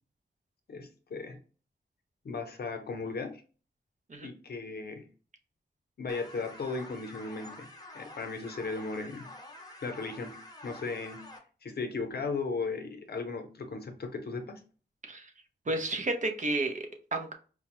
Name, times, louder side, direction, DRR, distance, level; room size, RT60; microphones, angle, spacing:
voice 1, 0.7-1.4 2.2-3.4 4.2-5.1 6.0-7.7 7.9-9.3 9.8-10.4 10.6-11.3 11.6-14.6, left 4 dB, 60° left, 5 dB, 0.7 m, -36 dB
sound 1, 6.1-11.4, left 1 dB, 20° left, 0.7 m, -48 dB
voice 2, 15.7-17.3, right 2 dB, 45° right, 4 dB, 0.6 m, -32 dB
4.7 x 2.1 x 2.9 m, 0.38 s
wide cardioid pair, 125°, 18 cm